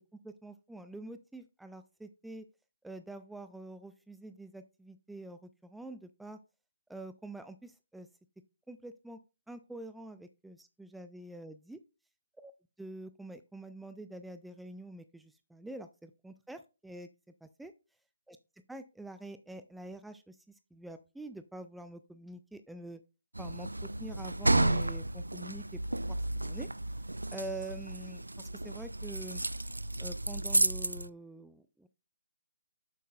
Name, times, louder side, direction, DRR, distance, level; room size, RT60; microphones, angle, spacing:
voice 1, 0.2-2.5 2.8-6.4 6.9-8.1 8.7-9.2 9.5-11.8 12.4-12.5 12.8-17.1 17.4-17.7 18.3-18.4 18.7-23.0 23.4-23.7 24.0-26.7 27.3-29.4 30.0-31.9, right 2 dB, ahead, 10 dB, 0.3 m, -46 dB
sound 1, 23.3-31.1, right 2 dB, 80° right, 0.4 m, -32 dB
9.1 x 7.4 x 2.3 m, 0.30 s
figure-of-eight pair, 140°, 0 cm